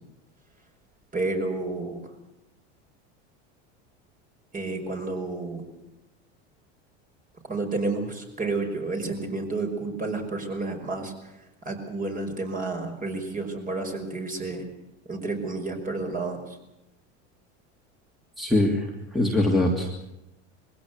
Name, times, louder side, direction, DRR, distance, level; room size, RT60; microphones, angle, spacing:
voice 1, 1.1-2.1 4.5-5.7 7.5-14.7 15.1-16.6, right 3 dB, 25° right, 3 dB, 5.4 m, -31 dB
voice 2, 18.4-19.9, left 1 dB, ahead, 0 dB, 2.9 m, -23 dB
22.0 x 16.5 x 8.2 m, 0.90 s
supercardioid pair, 110°, 34 cm